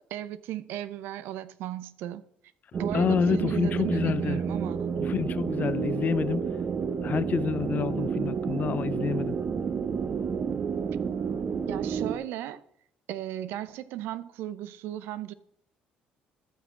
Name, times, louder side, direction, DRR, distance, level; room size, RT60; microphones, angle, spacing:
voice 1, 0.1-2.2 2.8-4.9 11.7-12.6 13.1-15.3, right 13 dB, 80° right, 0.6 m, -36 dB
sound 1, 2.7-12.2, right 6 dB, 45° right, 0.8 m, -30 dB
voice 2, 2.9-4.4 5.0-6.4 7.0-9.4, left 7 dB, 45° left, 0.4 m, -28 dB
14.5 x 6.1 x 3.7 m
supercardioid pair, 80°, 4 cm